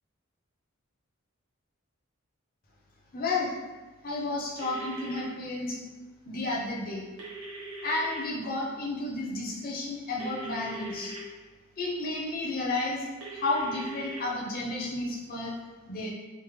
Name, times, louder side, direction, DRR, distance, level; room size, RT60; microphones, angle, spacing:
voice 1, 3.1-3.5 4.0-5.8 6.3-7.1 7.8-11.1 11.8-13.0 13.3-15.5 15.9-16.1, left 2 dB, 45° left, -3 dB, 0.6 m, -32 dB
sound 1, 4.6-5.2 7.2-8.2 10.2-11.2 13.2-14.2, right 2 dB, 70° right, 0.7 m, -41 dB
3.4 x 2.1 x 3.1 m, 1.3 s
head